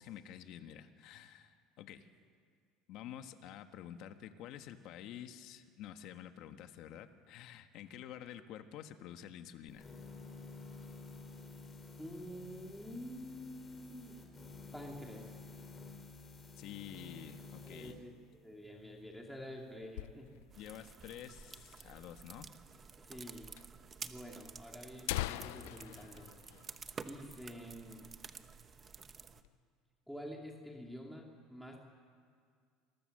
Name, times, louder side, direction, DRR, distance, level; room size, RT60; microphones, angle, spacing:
voice 1, 0.0-2.1 2.9-9.9 16.6-18.0 20.6-22.5, left 10 dB, 60° left, 8 dB, 1.4 m, -49 dB
sound 1, 9.7-18.0, left 3 dB, 25° left, 3.8 m, -51 dB
voice 2, 12.0-14.2 14.7-15.3 17.6-18.2 18.4-20.3 23.1-23.5 24.0-26.3 27.0-28.1 30.1-31.2 31.5-31.8, equal, ahead, -1 dB, 2.6 m, -48 dB
sound 2, 18.9-20.7 21.0-21.1 21.3-21.4 22.1-22.2 23.1-23.2 23.6-23.7 24.4-24.5 24.8-27.4 27.8-27.9 28.3-28.6 29.0-29.6, left 17 dB, 90° left, 0.6 m, -42 dB
sound 3, 20.5-29.4, right 5 dB, 25° right, 1.1 m, -51 dB
27.5 x 22.0 x 6.6 m, 2.1 s
cardioid pair, 135°, 0 cm